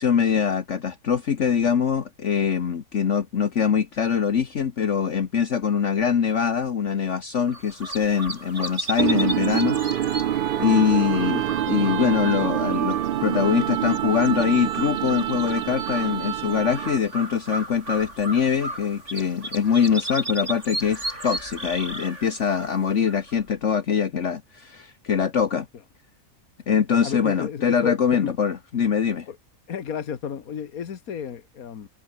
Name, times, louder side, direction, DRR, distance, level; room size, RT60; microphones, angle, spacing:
voice 1, 0.0-9.8 10.1-10.3 10.6-25.7 26.7-29.3, left 7 dB, 55° left, 1.5 m, -23 dB
sound 1, 7.5-23.5, right 1 dB, 55° right, 8.6 m, -35 dB
sound 2, 9.0-17.2, right 11 dB, 75° right, 0.5 m, -26 dB
voice 2, 27.0-28.3 29.3-29.4 29.7-31.9, left 8 dB, 75° left, 1.8 m, -33 dB
omnidirectional pair, 1.5 m